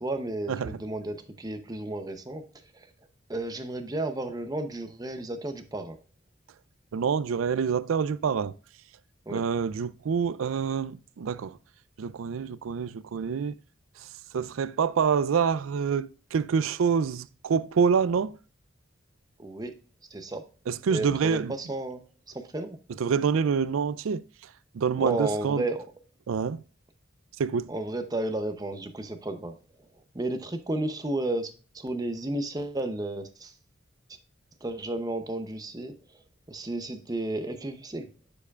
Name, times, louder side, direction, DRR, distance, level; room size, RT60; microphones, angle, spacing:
voice 1, 0.0-2.5 2.7-2.9 3.3-6.0 9.3-9.5 19.4-19.7 20.1-20.5 20.9-22.8 25.0-25.9 27.7-29.9 30.1-33.5 34.6-35.9 36.5-38.1, right 2 dB, 20° right, 0.7 m, -33 dB
voice 2, 6.9-8.5 9.3-11.6 12.0-13.6 14.3-18.4 20.7-21.5 23.0-24.2 24.7-25.6 26.3-26.6 27.4-27.7, right 6 dB, 85° right, 0.4 m, -26 dB
7.1 x 6.8 x 2.4 m
head